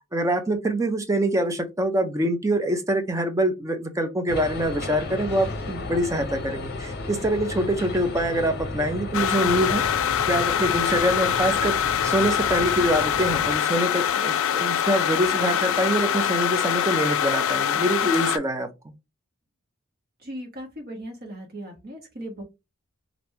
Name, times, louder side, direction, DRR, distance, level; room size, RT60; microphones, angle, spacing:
voice 1, 0.1-9.8 10.3-18.7, right 1 dB, 15° right, 0.5 m, -25 dB
sound 1, 4.3-13.6, left 2 dB, 50° left, 0.7 m, -33 dB
sound 2, 9.1-18.4, left 9 dB, 65° left, 0.3 m, -24 dB
voice 2, 20.2-22.4, right 1 dB, 50° right, 1.2 m, -37 dB
3.2 x 2.5 x 3.2 m
head